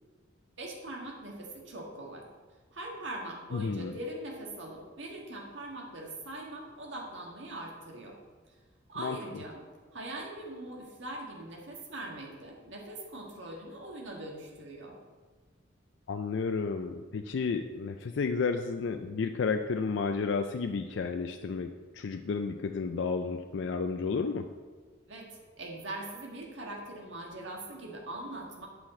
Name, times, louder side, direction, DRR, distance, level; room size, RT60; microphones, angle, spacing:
voice 1, 0.6-2.2 2.7-8.2 8.9-9.6 9.9-15.0 25.1-28.7, right 1 dB, 75° right, -1 dB, 1.7 m, -41 dB
voice 2, 3.5-3.9 9.0-9.2 16.1-24.5, left 4 dB, 70° left, 6 dB, 0.4 m, -32 dB
8.9 x 5.7 x 4.3 m, 1.4 s
head